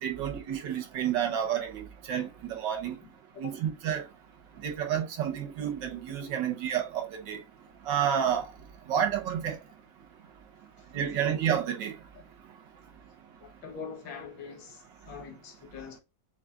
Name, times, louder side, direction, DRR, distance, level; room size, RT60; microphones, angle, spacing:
voice 1, 0.0-2.9 3.4-4.0 4.6-7.4 7.9-8.5 8.9-9.6 10.9-11.9, right 9 dB, 80° right, 1.6 m, -30 dB
voice 2, 3.0-3.5 13.4-16.0, left 6 dB, 90° left, 1.8 m, -44 dB
6.9 x 2.5 x 2.4 m
omnidirectional pair, 2.0 m